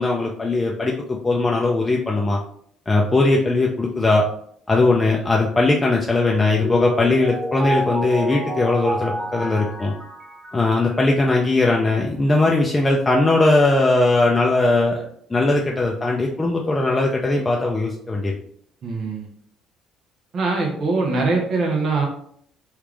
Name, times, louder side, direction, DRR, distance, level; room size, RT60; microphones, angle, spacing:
voice 1, 0.0-2.4 2.9-4.2 4.7-9.9 10.5-15.0 15.3-18.4, left 2 dB, 20° left, -1 dB, 0.5 m, -19 dB
Mallet percussion, 6.3-11.3, right 1 dB, 15° right, 0.7 m, -29 dB
voice 2, 18.8-19.3 20.3-22.1, right 3 dB, 55° right, 0 dB, 0.7 m, -22 dB
3.4 x 2.4 x 3.3 m, 0.66 s
supercardioid pair, 75°, 0 cm